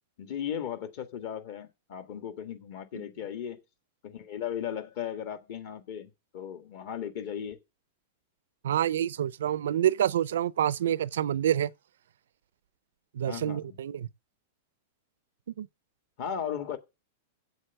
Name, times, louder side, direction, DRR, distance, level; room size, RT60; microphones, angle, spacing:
voice 1, 0.2-3.6 4.0-7.6 13.3-13.7 16.2-16.8, left 9 dB, 45° left, 1.7 m, -36 dB
voice 2, 8.6-11.7 13.1-14.1 15.6-15.7, right 10 dB, 85° right, 0.6 m, -27 dB
8.0 x 8.0 x 7.9 m
supercardioid pair, 170°, 0 cm